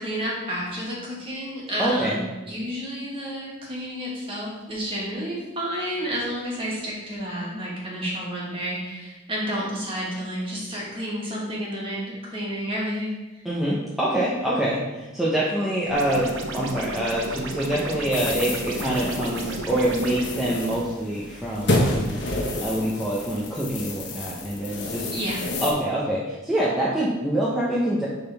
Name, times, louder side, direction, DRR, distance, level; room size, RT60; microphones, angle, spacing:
voice 1, 0.0-13.4 25.1-25.4, equal, 25° right, -5 dB, 1.9 m, -30 dB
voice 2, 1.8-2.2 13.4-16.3 16.5-22.2 22.6-25.1 25.6-28.1, right 1 dB, ahead, -8 dB, 0.8 m, -25 dB
sound 1, 15.9-20.3, right 2 dB, 80° right, 0.8 m, -33 dB
sound 2, 18.1-25.7, left 1 dB, 60° left, 1.3 m, -29 dB
11.0 x 3.9 x 3.5 m, 1.1 s
head